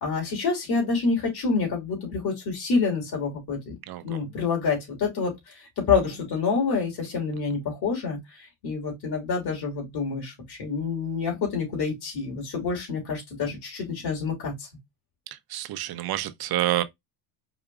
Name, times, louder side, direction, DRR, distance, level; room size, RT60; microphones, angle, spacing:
voice 1, 0.0-3.8 4.0-14.7, left 4 dB, 55° left, 3.0 m, -27 dB
voice 2, 3.9-4.2 15.3-16.8, right 14 dB, 50° right, 0.7 m, -28 dB
4.8 x 2.8 x 2.4 m
cardioid pair, 100°, 47 cm